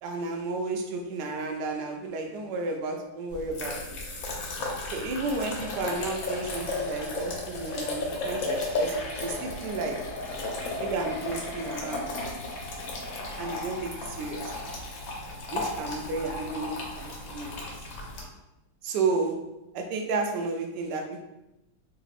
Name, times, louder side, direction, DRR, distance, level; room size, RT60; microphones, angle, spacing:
voice 1, 0.0-4.0 4.9-10.1 10.8-12.1 13.4-14.5 15.5-17.6 18.8-21.2, right 3 dB, 75° right, 3 dB, 1.1 m, -32 dB
sound 1, 3.3-18.2, left 2 dB, 80° left, 1.5 m, -34 dB
3.5 x 2.9 x 2.4 m, 0.92 s
omnidirectional pair, 2.1 m